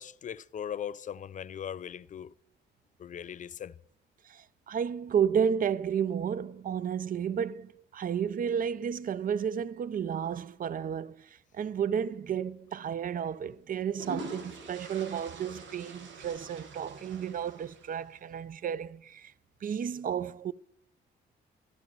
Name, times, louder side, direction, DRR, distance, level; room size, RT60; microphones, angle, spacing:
voice 1, 0.0-2.3 3.0-3.8, left 9 dB, 40° left, 0.4 m, -39 dB
voice 2, 4.3-11.3 11.5-19.3 19.6-20.5, right 8 dB, 45° right, 0.5 m, -32 dB
sound 1, 12.3-12.5 13.6-18.2, right 3 dB, 70° right, 1.9 m, -44 dB
12.0 x 11.5 x 4.5 m
cardioid pair, 90°, 20 cm